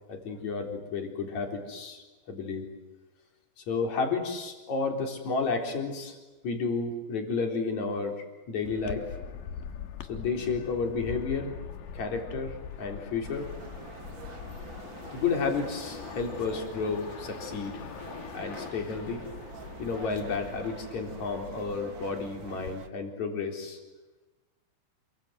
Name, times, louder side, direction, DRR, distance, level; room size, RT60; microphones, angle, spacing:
voice 1, 0.1-2.7 3.6-6.2 6.4-9.0 10.1-11.5 11.9-13.5 15.1-17.8 18.3-19.2 19.8-23.8, left 4 dB, 45° left, 2 dB, 5.1 m, -32 dB
sound 1, 8.7-22.8, left 8 dB, 65° left, 2.8 m, -43 dB
sound 2, 13.2-22.9, right 6 dB, 85° right, 1.0 m, -46 dB
28.0 x 25.0 x 8.1 m, 1.2 s
omnidirectional pair, 4.7 m